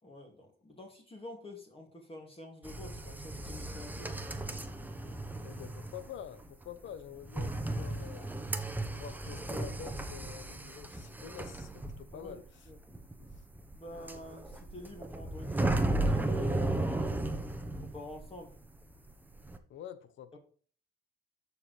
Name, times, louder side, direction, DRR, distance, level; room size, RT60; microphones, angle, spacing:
voice 1, 0.0-4.2 12.1-12.4 12.7-12.8 13.7-17.1 17.8-18.5, left 1 dB, 30° left, 2.4 m, -48 dB
sound 1, 2.6-18.6 18.8-19.6, right 2 dB, 10° right, 1.0 m, -35 dB
voice 2, 5.4-8.4 8.9-12.4 13.2-13.3 19.7-20.4, left 8 dB, 75° left, 1.0 m, -47 dB
13.5 x 4.8 x 3.3 m
cardioid pair, 90°, 20 cm